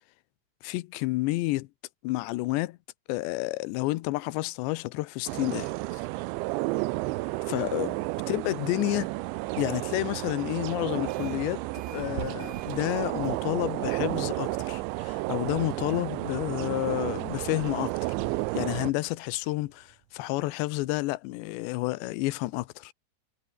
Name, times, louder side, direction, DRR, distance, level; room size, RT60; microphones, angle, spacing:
voice 1, 0.6-1.7 2.0-2.8 3.1-6.0 7.5-8.0 8.3-9.1 9.6-18.2 18.5-22.9, left 20 dB, 80° left, 2.8 m, -30 dB
sound 1, 5.3-18.9, right 22 dB, 85° right, 2.9 m, -32 dB
sound 2, 10.9-11.4 11.7-20.2, right 10 dB, 60° right, 2.2 m, -46 dB
omnidirectional pair, 5.4 m